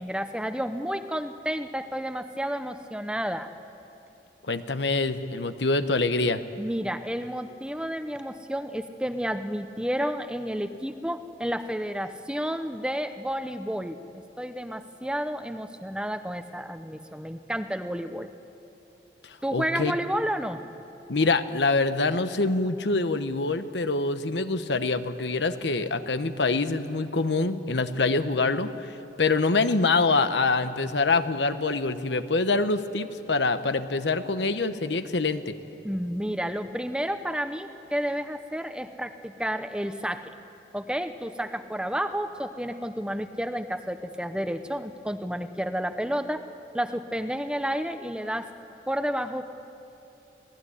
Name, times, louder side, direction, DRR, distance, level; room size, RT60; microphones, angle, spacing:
voice 1, 0.0-3.5 6.6-14.0 14.4-18.3 19.4-20.6 35.8-40.3 40.7-48.5 48.9-49.5, equal, 5° right, 9 dB, 0.8 m, -31 dB
voice 2, 4.5-6.4 19.2-19.9 21.1-28.7 29.2-35.6, left 3 dB, 85° left, 10 dB, 1.1 m, -25 dB
25.5 x 17.0 x 10.0 m, 2.8 s
head